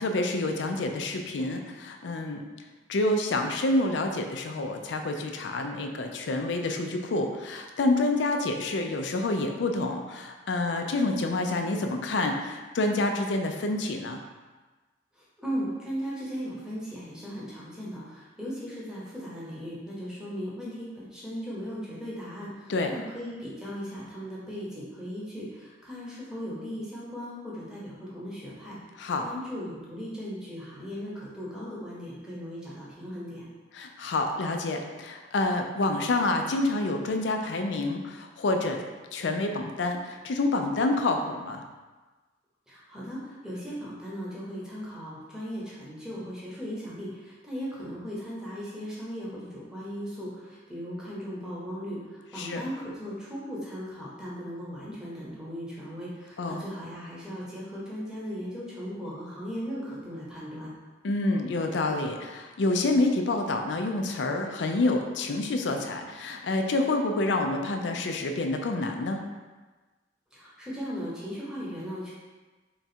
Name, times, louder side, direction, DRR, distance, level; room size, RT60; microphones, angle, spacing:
voice 1, 0.0-2.4 2.9-14.2 22.7-22.9 29.0-29.2 33.7-38.8 39.1-41.6 52.4-52.6 56.4-56.6 61.0-69.2, left 2 dB, 80° left, 4 dB, 0.4 m, -28 dB
voice 2, 15.1-28.8 29.2-33.4 42.7-60.7 70.3-72.1, equal, 5° right, -8 dB, 0.9 m, -37 dB
3.9 x 2.4 x 4.2 m, 1.3 s
head